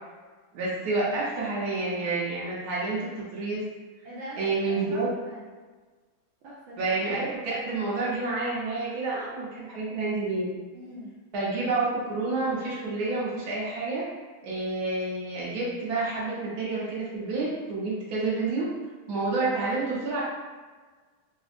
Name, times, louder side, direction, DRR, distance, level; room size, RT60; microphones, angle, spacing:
voice 1, 0.5-3.7 4.4-5.1 6.8-10.5 11.3-14.0 14.4-18.7 19.1-20.2, right 3 dB, 60° right, -7 dB, 1.1 m, -29 dB
voice 2, 4.0-4.4 4.7-5.4 6.4-6.7 7.0-7.2 10.7-11.1, equal, 75° right, -6 dB, 1.3 m, -42 dB
3.5 x 2.0 x 2.4 m, 1.4 s
omnidirectional pair, 2.3 m